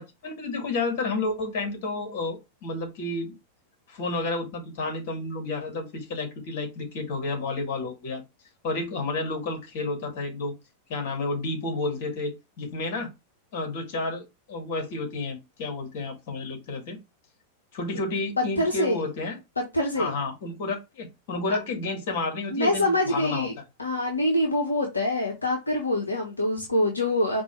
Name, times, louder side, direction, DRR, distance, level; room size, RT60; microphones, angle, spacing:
voice 1, 0.0-3.3 3.9-8.2 8.6-10.5 10.9-13.1 13.5-14.2 14.5-17.0 17.7-19.4 20.0-23.5, left 3 dB, 50° left, 2.0 m, -31 dB
voice 2, 18.6-19.1 19.7-20.1 22.5-23.5 23.8-27.4, left 1 dB, 75° left, 1.0 m, -25 dB
5.2 x 2.7 x 3.2 m
figure-of-eight pair, 90°, 0 cm